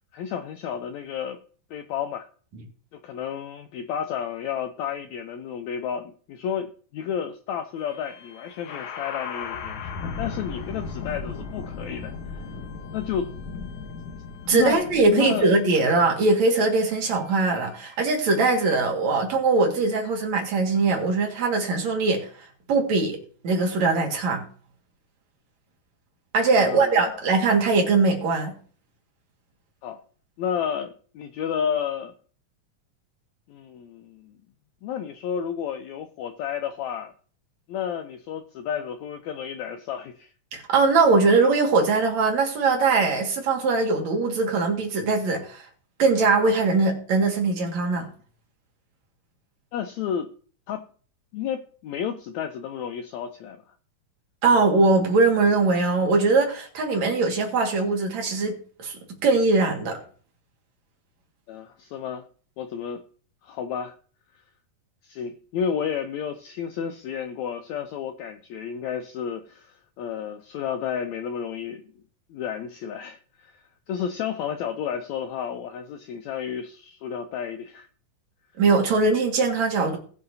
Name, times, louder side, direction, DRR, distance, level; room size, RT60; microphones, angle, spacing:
voice 1, 0.1-1.4 1.7-2.3 2.9-12.4 12.9-13.3 14.5-15.5 26.6-27.2 29.8-30.0 30.4-32.1 33.5-34.4 34.8-37.1 37.7-40.3 49.7-50.3 50.7-50.9 51.3-53.6 61.5-62.2 62.6-63.0 63.4-63.9 65.0-71.9 72.3-77.9, left 8 dB, 90° left, 8 dB, 1.6 m, -31 dB
sound 1, 7.8-18.8, left 5 dB, 65° left, 2.4 m, -37 dB
voice 2, 14.5-22.3 22.7-23.2 23.4-24.5 26.3-28.6 40.5-45.6 46.0-48.1 54.4-60.0 78.6-80.0, right 3 dB, 55° right, 1 dB, 3.0 m, -21 dB
19.0 x 6.6 x 2.7 m, 0.43 s
omnidirectional pair, 3.9 m